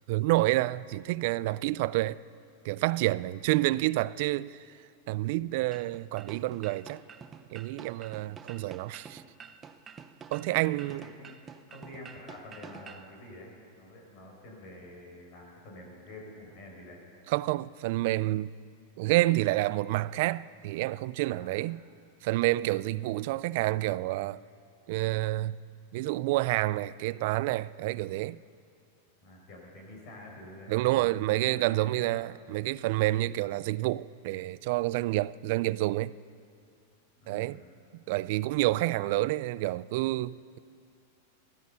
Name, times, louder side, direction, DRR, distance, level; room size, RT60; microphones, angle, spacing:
voice 1, 0.1-2.2 2.6-4.6 5.1-7.0 7.5-9.2 10.3-11.0 17.3-18.5 19.0-21.8 22.2-24.4 24.9-25.6 25.9-28.4 30.7-36.1 37.3-37.6 37.9-40.6, right 18 dB, 60° right, 0.3 m, -28 dB
sound 1, 5.7-13.1, right 6 dB, 20° right, 0.7 m, -48 dB
voice 2, 10.9-11.4 11.7-17.0 21.4-21.6 29.2-32.2 37.2-37.7, left 1 dB, 50° left, 5.2 m, -48 dB
16.0 x 12.5 x 6.9 m
supercardioid pair, 140°, 0 cm